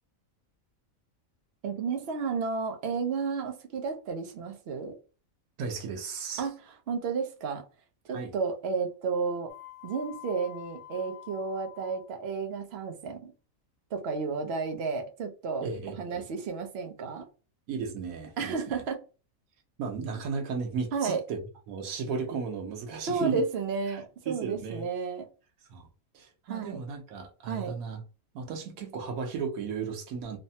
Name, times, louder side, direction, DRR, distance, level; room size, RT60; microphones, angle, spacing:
voice 1, 1.6-5.0 6.4-7.7 8.0-9.5 9.8-13.3 13.9-15.7 16.0-17.3 18.4-19.0 20.9-21.2 23.1-25.3 26.5-26.8 27.5-27.8, right 5 dB, 60° right, 0.8 m, -32 dB
voice 2, 5.6-6.5 8.1-8.3 15.6-16.2 17.7-18.8 19.8-21.4 21.7-23.4 24.3-24.9 25.7-25.9 26.1-28.0 28.3-30.4, right 5 dB, 90° right, 1.2 m, -35 dB
sound 1, 9.5-12.1, left 14 dB, 65° left, 1.0 m, -47 dB
3.2 x 2.0 x 2.7 m
omnidirectional pair, 1.4 m